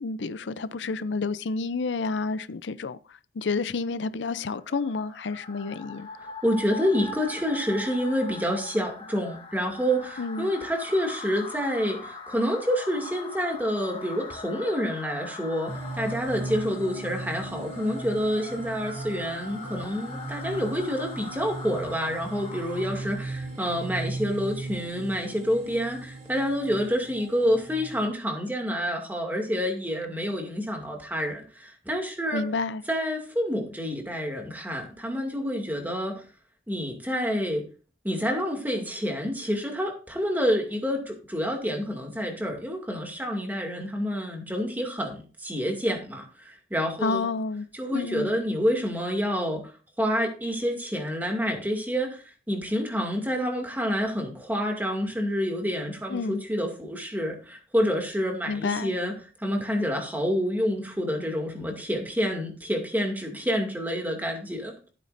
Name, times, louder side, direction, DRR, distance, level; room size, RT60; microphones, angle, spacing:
voice 1, 0.0-6.1 10.2-10.5 32.3-32.8 47.0-47.7 47.9-48.4 56.1-56.4 58.5-58.9, left 4 dB, 85° left, 0.5 m, -30 dB
sound 1, 4.4-23.3, left 3 dB, 30° left, 1.7 m, -41 dB
voice 2, 6.2-32.4 32.9-36.2 36.7-37.6 38.0-47.3 47.7-49.6 50.0-59.1 59.4-64.7, equal, 10° right, 2.3 m, -28 dB
sound 2, 15.7-28.0, right 2 dB, 45° right, 4.3 m, -38 dB
15.0 x 8.5 x 2.6 m
head